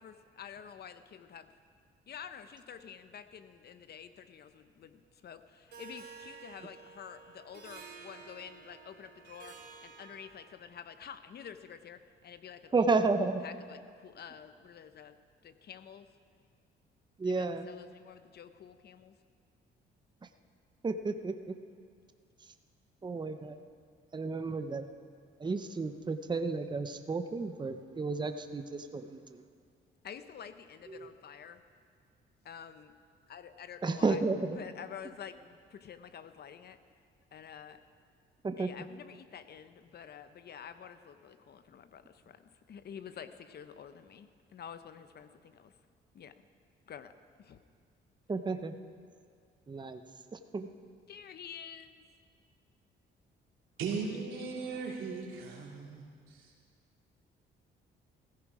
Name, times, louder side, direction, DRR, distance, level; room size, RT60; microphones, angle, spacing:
voice 1, 0.0-1.5 2.1-15.2 15.4-16.1 17.2-19.1 30.0-31.6 32.4-32.9 33.3-34.2 34.5-36.8 37.3-37.8 38.6-45.7 46.1-46.5 46.9-47.1 47.4-47.6 51.1-52.1, left 8 dB, 55° left, 11 dB, 0.9 m, -49 dB
Harp, 5.7-10.7, right 5 dB, 55° right, 2.8 m, -52 dB
voice 2, 12.7-13.4 17.2-17.7 20.8-21.5 23.0-23.5 24.1-24.9 25.4-29.4 30.9-31.1 33.8-34.6 38.4-38.7 48.3-48.8 49.7-50.0 50.3-50.7, right 3 dB, 20° right, 8 dB, 0.8 m, -32 dB
voice 3, 53.8-56.5, right 5 dB, 80° right, -2 dB, 3.0 m, -38 dB
15.5 x 15.0 x 4.9 m, 2.1 s
cardioid pair, 90°, 20 cm